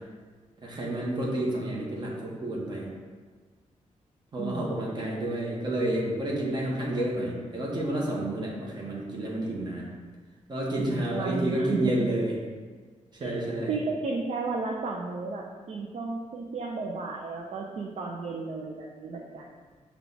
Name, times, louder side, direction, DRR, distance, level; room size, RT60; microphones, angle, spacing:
voice 1, 0.6-2.9 4.3-9.9 10.5-12.3 13.1-13.8, right 1 dB, 35° right, -4 dB, 1.0 m, -30 dB
voice 2, 4.4-4.7 10.8-11.9 13.2-13.3 13.7-19.5, right 4 dB, 55° right, 0 dB, 0.4 m, -33 dB
5.7 x 2.3 x 3.8 m, 1.5 s
wide cardioid pair, 140°, 13 cm